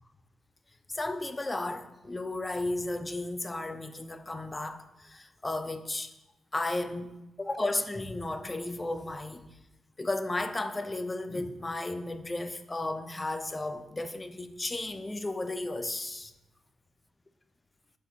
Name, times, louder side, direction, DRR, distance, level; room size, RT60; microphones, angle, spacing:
voice 1, 0.9-6.1 6.5-9.5 10.0-16.3, left 2 dB, 15° left, 9 dB, 0.6 m, -34 dB
6.1 x 6.1 x 5.7 m, 0.97 s
wide cardioid pair, 130°, 0 cm